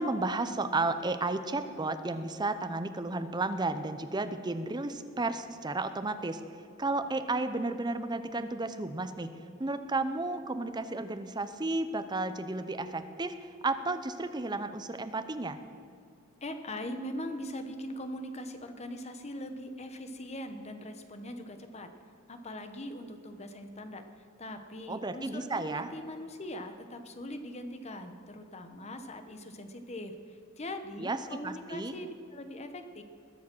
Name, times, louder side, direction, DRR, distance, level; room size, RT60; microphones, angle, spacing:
voice 1, 0.0-6.4 6.8-9.3 9.6-15.6 24.9-25.9 31.0-32.0, right 2 dB, 20° right, 10 dB, 0.7 m, -33 dB
voice 2, 16.4-21.9 22.3-24.0 24.4-33.0, left 1 dB, 30° left, 7 dB, 1.0 m, -41 dB
20.5 x 7.3 x 6.2 m, 2.4 s
head